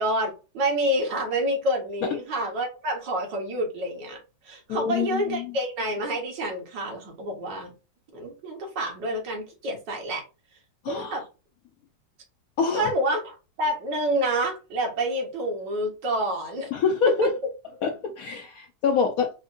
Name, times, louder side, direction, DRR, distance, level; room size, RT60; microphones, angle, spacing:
voice 1, 0.0-4.2 4.5-7.7 8.1-10.2 10.9-11.2 12.7-16.7, right 1 dB, 70° right, 2.0 m, -28 dB
voice 2, 4.7-5.4 10.8-11.1 12.6-12.9 16.7-17.3 17.8-19.3, left 6 dB, 70° left, 0.9 m, -25 dB
4.3 x 2.6 x 2.5 m
omnidirectional pair, 2.0 m